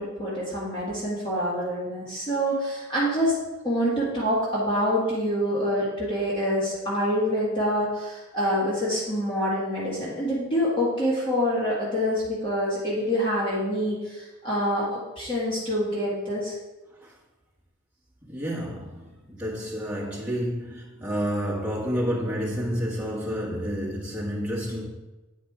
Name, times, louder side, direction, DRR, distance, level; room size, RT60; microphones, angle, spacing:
voice 1, 0.0-3.4 3.6-16.6, equal, 20° left, 2.1 m, -26 dB
voice 2, 18.2-24.9, equal, 5° right, 1.8 m, -30 dB
9.0 x 5.0 x 4.9 m
head